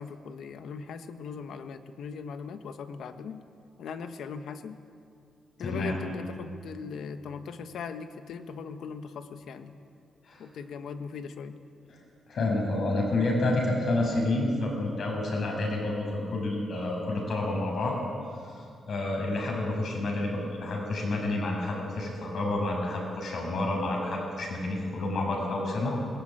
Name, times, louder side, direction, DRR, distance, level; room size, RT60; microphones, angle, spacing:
voice 1, 0.0-3.4 3.8-4.8 5.6-9.8 10.4-11.6, left 6 dB, 80° left, 8 dB, 1.3 m, -39 dB
voice 2, 5.6-6.0 10.3-10.4 12.3-18.0 18.4-26.0, left 2 dB, 60° left, 0 dB, 6.8 m, -29 dB
20.5 x 18.5 x 9.0 m, 2.5 s
wide cardioid pair, 135°, 0 cm